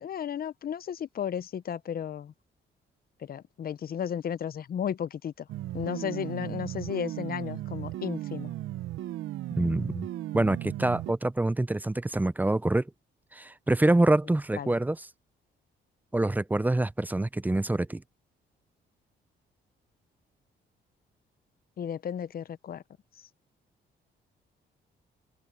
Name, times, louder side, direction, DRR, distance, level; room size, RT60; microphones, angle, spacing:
voice 1, 0.0-2.3 3.2-5.5 5.7-8.5 14.6-14.7 21.8-22.8, left 8 dB, 50° left, 0.7 m, -34 dB
sound 1, 5.5-11.1, right 14 dB, 85° right, 0.9 m, -36 dB
voice 2, 9.6-10.1 10.3-12.9 13.3-15.1 16.1-18.0, right 2 dB, 10° right, 0.5 m, -26 dB
open air
cardioid pair, 90°, 20 cm